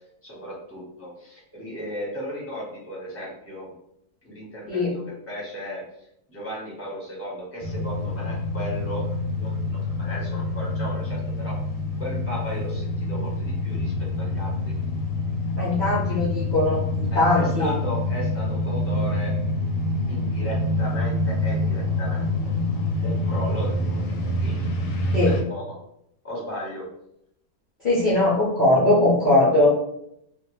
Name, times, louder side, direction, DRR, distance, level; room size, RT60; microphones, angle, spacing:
voice 1, 0.2-3.7 4.2-5.8 6.3-9.0 9.4-11.5 12.0-13.9 14.2-14.7 17.1-19.3 20.1-22.2 23.0-24.6 25.0-25.7 26.2-26.8, equal, 10° left, -6 dB, 0.8 m, -35 dB
sound 1, 7.6-25.4, left 1 dB, 90° left, 1.1 m, -26 dB
voice 2, 15.6-17.7 25.1-25.4 27.8-29.7, left 2 dB, 60° left, -8 dB, 0.5 m, -20 dB
2.5 x 2.2 x 3.0 m, 0.76 s
omnidirectional pair, 1.7 m